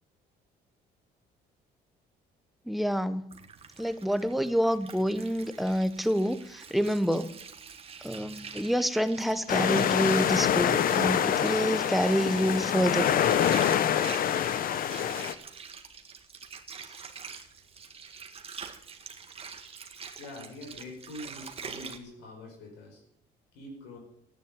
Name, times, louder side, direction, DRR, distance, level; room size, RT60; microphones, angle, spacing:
voice 1, 2.7-3.3 3.8-7.3 8.0-13.1, equal, ahead, 12 dB, 1.0 m, -27 dB
Water, 3.3-22.0, right 6 dB, 35° right, 1.8 m, -45 dB
sound 1, 9.5-15.3, left 9 dB, 60° left, 1.0 m, -26 dB
voice 2, 20.2-23.0 23.5-24.0, left 2 dB, 90° left, 2 dB, 5.8 m, -44 dB
14.5 x 9.9 x 9.2 m, 0.73 s
cardioid pair, 110°, 17 cm